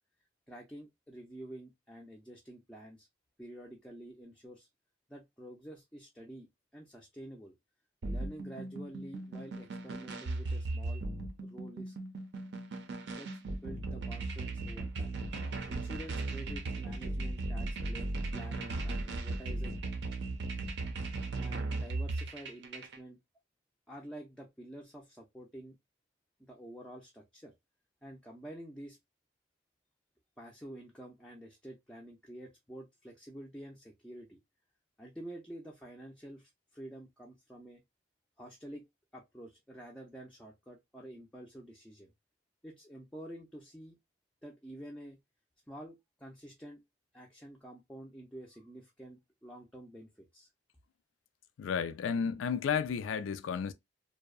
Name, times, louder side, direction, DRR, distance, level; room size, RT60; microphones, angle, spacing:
voice 1, 0.5-3.1 3.4-4.7 5.1-6.5 6.7-7.5 8.1-11.0 11.4-12.0 13.1-15.2 15.7-19.8 21.4-23.2 23.9-25.8 26.4-27.5 28.0-29.0 30.4-34.4 35.0-37.8 38.4-38.9 39.1-42.1 42.6-44.0 44.4-45.2 45.7-46.8 47.1-50.5, right 1 dB, 5° left, 0.4 m, -49 dB
sound 1, 8.0-23.0, right 2 dB, 65° right, 0.5 m, -37 dB
voice 2, 51.6-53.7, left 6 dB, 90° left, 0.3 m, -32 dB
2.6 x 2.0 x 2.3 m
head